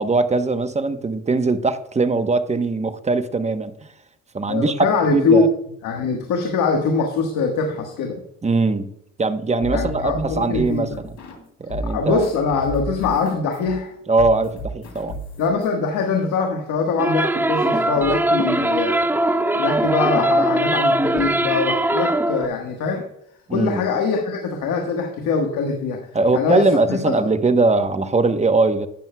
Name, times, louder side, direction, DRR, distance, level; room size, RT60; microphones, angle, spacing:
voice 1, 0.0-3.7 4.3-5.5 8.4-8.9 9.2-10.9 11.6-12.3 14.1-15.1 23.5-23.8 26.1-28.9, right 3 dB, 20° right, 9 dB, 0.9 m, -20 dB
voice 2, 4.5-5.5 5.8-8.2 9.7-11.0 11.8-13.9 15.4-19.0 19.6-23.0 23.5-26.0 26.3-27.0, left 4 dB, 90° left, 3 dB, 1.4 m, -22 dB
sound 1, 9.6-11.4 11.7-15.7, equal, 70° left, 2.8 m, -33 dB
sound 2, 17.0-22.5, right 1 dB, 5° right, 0.5 m, -20 dB
11.5 x 8.9 x 2.2 m, 0.73 s
cardioid pair, 90°, 30 cm